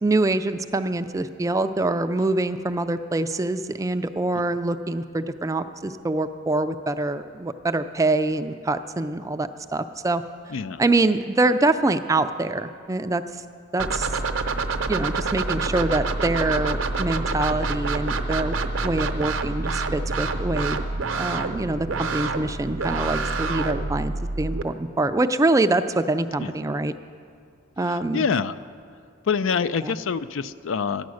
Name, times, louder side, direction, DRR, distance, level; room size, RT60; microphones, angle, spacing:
voice 1, 0.0-10.2 10.8-13.2 13.7-14.1 14.9-20.8 21.2-26.9 27.8-28.3 29.8-30.0, right 2 dB, 15° right, 10 dB, 0.4 m, -25 dB
voice 2, 10.5-10.8 26.4-26.6 27.9-28.5 29.2-31.1, left 6 dB, 75° left, 14 dB, 0.4 m, -26 dB
sound 1, 13.8-24.6, right 3 dB, 75° right, 0.8 m, -27 dB
14.0 x 10.5 x 6.4 m, 2.2 s
head